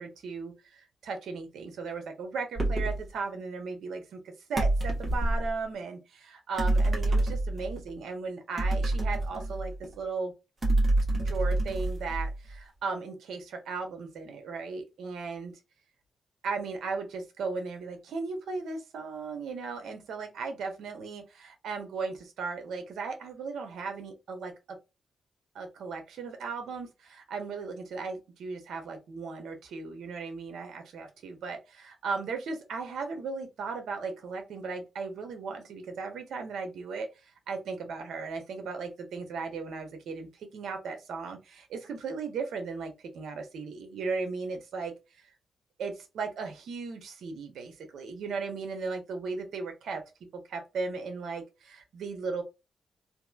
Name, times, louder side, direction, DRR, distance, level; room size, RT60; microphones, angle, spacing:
voice 1, 0.0-10.3 11.1-15.5 16.4-24.8 25.5-45.3 45.8-50.0 50.5-52.4, right 4 dB, 85° right, 0.8 m, -36 dB
sound 1, 2.6-3.0 4.6-5.5 6.6-7.8 8.6-9.9 10.6-12.5, right 2 dB, 35° right, 1.3 m, -27 dB
2.9 x 2.6 x 2.4 m
cardioid pair, 90°, 0 cm